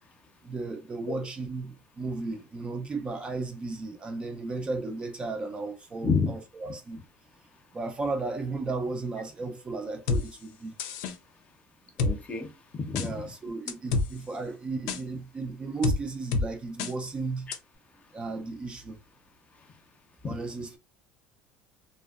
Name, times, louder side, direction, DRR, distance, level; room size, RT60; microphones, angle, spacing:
voice 1, 0.4-7.0 7.7-10.8 13.0-17.5 18.1-19.0 20.2-20.8, right 3 dB, 20° right, 0.3 m, -34 dB
sound 1, 10.1-10.2 10.8-11.1 12.0-12.1 13.0-13.1 13.7-14.1 14.9-15.0 15.8-16.0 16.3-16.5 16.8-16.9 17.5-17.6, left 3 dB, 85° left, 0.4 m, -26 dB
voice 2, 12.0-13.1 20.2-20.4, left 5 dB, 30° left, 0.6 m, -29 dB
2.6 x 2.1 x 2.3 m
cardioid pair, 125°, 5 cm